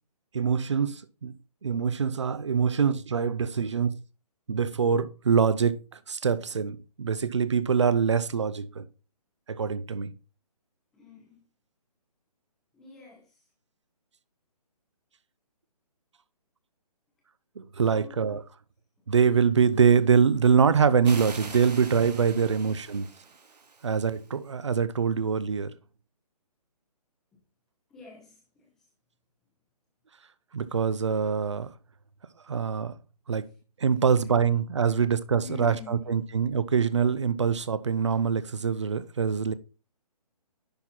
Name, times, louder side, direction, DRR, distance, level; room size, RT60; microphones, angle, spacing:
voice 1, 0.3-1.3 1.6-4.0 4.5-5.8 6.1-8.9 9.5-10.1 17.6-18.4 19.1-23.1 23.8-25.7 30.5-31.7 32.5-32.9 33.3-33.5 33.8-39.5, right 6 dB, 45° right, 0.6 m, -24 dB
voice 2, 10.9-11.5 12.7-13.5 17.9-18.4 22.0-22.8 27.3-27.4 27.9-28.9 33.4-33.6 34.2-34.3 34.8-35.0 35.4-36.2, left 6 dB, ahead, 0.8 m, -49 dB
sound 1, 21.0-24.3, right 4 dB, 90° right, 1.8 m, -43 dB
10.5 x 4.2 x 4.3 m
hypercardioid pair, 180°, 20 cm